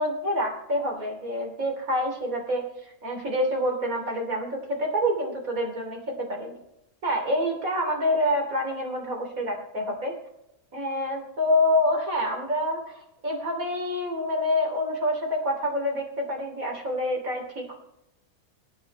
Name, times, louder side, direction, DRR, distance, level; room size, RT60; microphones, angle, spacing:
voice 1, 0.0-2.6 3.0-6.6 7.0-10.1 10.7-12.8 13.2-17.8, left 1 dB, 60° right, 1 dB, 3.5 m, -27 dB
22.5 x 9.4 x 3.2 m, 0.85 s
omnidirectional pair, 1.7 m